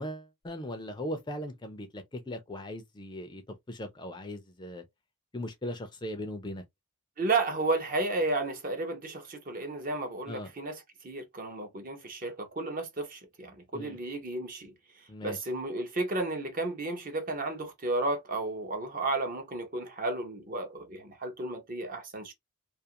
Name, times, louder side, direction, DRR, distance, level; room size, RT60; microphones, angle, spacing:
voice 1, 0.0-3.4 3.7-4.8 5.3-6.6 10.3-10.5 13.7-14.0 15.1-15.4, left 1 dB, 20° left, 0.4 m, -38 dB
voice 2, 7.2-14.7 15.2-22.3, right 2 dB, 40° right, 0.7 m, -33 dB
2.4 x 2.4 x 2.8 m
head